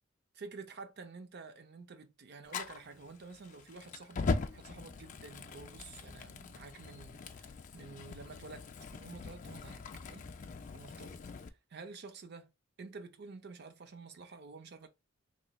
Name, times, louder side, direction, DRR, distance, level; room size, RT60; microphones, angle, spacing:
voice 1, 0.3-10.3 10.7-12.5 12.8-14.9, right 4 dB, 55° right, 0.5 m, -50 dB
Fire, 2.5-11.5, left 4 dB, 40° left, 0.3 m, -41 dB
3.1 x 2.3 x 4.0 m
head